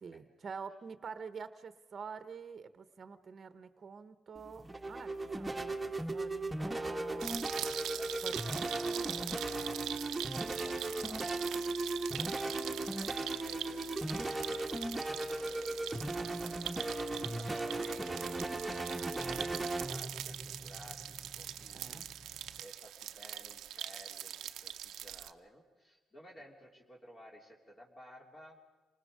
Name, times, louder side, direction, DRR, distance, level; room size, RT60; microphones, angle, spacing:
voice 1, 0.0-5.1 5.4-5.7 6.1-7.4 8.2-8.4 21.7-22.1, right 5 dB, 45° right, 11 dB, 1.0 m, -47 dB
sound 1, 4.3-22.6, right 2 dB, 10° right, 1.4 m, -37 dB
voice 2, 5.3-5.7 7.9-11.7 12.1-14.7 15.0-16.1 16.4-16.8 17.3-22.0 22.6-24.3 24.6-28.6, equal, 30° left, -2 dB, 3.3 m, -55 dB
more extreme frying, 7.2-25.3, right 11 dB, 80° right, 0.7 m, -43 dB
28.5 x 20.0 x 5.1 m, 1.2 s
cardioid pair, 90°, 0 cm